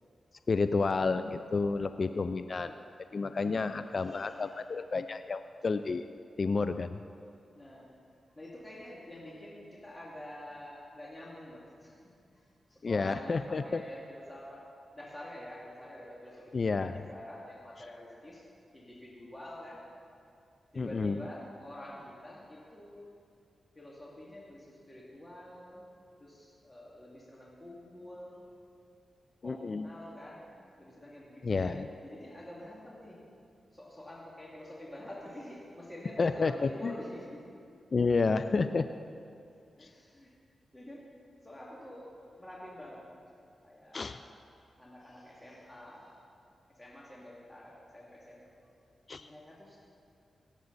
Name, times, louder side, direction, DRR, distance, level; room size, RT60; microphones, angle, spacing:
voice 1, 0.5-2.7 3.1-6.0 6.4-7.0 12.8-13.8 16.5-16.9 20.8-21.2 29.4-29.9 31.4-31.9 36.2-36.9 37.9-38.9 39.8-39.9 43.9-44.2 49.1-49.3, left 4 dB, 55° left, 10 dB, 0.3 m, -30 dB
voice 2, 3.3-4.6 5.5-5.6 7.2-7.9 8.3-12.0 12.3-14.7 14.9-18.4 18.7-19.8 20.7-23.0 23.7-25.9 26.2-28.5 29.4-31.8 32.0-33.2 33.7-37.6 39.8-40.3 40.7-41.1 41.4-43.1 43.6-44.4 44.8-46.2 46.8-48.4 49.1-49.8, left 1 dB, 20° left, -5 dB, 2.4 m, -48 dB
17.5 x 8.1 x 4.1 m, 2.4 s
supercardioid pair, 45°, 0 cm